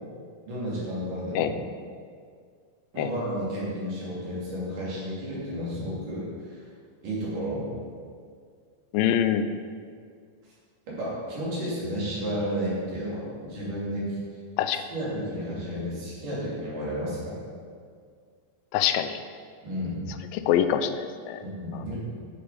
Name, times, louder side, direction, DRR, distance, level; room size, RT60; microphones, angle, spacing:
voice 1, 0.5-1.5 2.9-6.6 7.0-7.7 10.9-14.2 14.7-17.4 19.6-20.1 21.4-22.0, equal, 70° right, -7 dB, 4.3 m, -32 dB
voice 2, 8.9-9.5 14.6-14.8 18.7-19.2 20.3-21.4, left 10 dB, 85° left, 10 dB, 2.3 m, -24 dB
9.6 x 6.8 x 5.0 m, 2.1 s
omnidirectional pair, 4.0 m